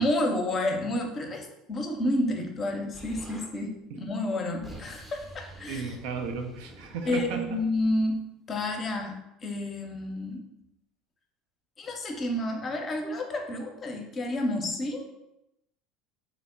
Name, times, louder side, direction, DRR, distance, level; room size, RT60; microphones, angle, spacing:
voice 1, 0.0-5.8 7.1-8.2 8.5-10.5 11.8-15.1, left 1 dB, 35° left, 3 dB, 0.6 m, -30 dB
Explosion, 2.9-3.5 4.3-8.2, right 1 dB, 15° right, 0.6 m, -47 dB
voice 2, 5.7-7.6, right 5 dB, 65° right, 5 dB, 0.4 m, -34 dB
3.1 x 2.1 x 3.7 m, 0.86 s
hypercardioid pair, 75°, 0 cm